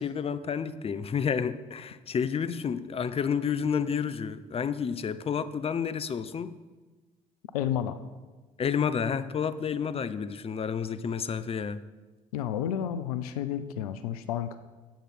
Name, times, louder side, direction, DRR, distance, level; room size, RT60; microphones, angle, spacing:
voice 1, 0.0-6.5 8.6-11.8, left 7 dB, 30° left, 14 dB, 0.6 m, -30 dB
voice 2, 7.5-8.0 12.3-14.6, left 10 dB, 80° left, 12 dB, 0.4 m, -31 dB
10.0 x 8.2 x 4.1 m, 1.2 s
hypercardioid pair, 45°, 19 cm